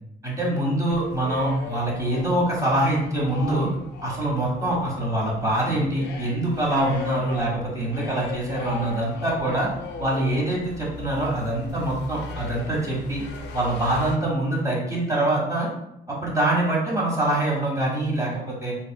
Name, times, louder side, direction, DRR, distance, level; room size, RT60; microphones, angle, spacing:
voice 1, 0.2-3.7 4.0-9.7 10.0-13.2 13.5-15.7 16.1-18.7, right 1 dB, 15° right, -4 dB, 1.2 m, -24 dB
sound 1, 0.9-14.2, left 3 dB, 60° left, 0.5 m, -38 dB
3.3 x 2.7 x 2.2 m, 0.83 s
cardioid pair, 90°, 20 cm